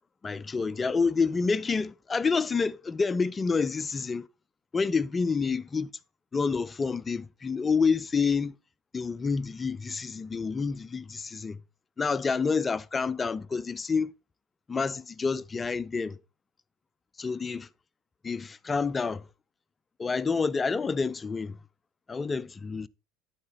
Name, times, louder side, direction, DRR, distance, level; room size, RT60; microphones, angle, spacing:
voice 1, 0.2-4.3 4.7-5.9 6.3-8.6 8.9-11.6 12.0-14.1 14.7-16.2 17.2-17.7 18.2-19.2 20.0-21.6 22.1-22.9, left 5 dB, 25° left, 0.4 m, -28 dB
11.0 x 4.9 x 4.2 m
hypercardioid pair, 80°, 0 cm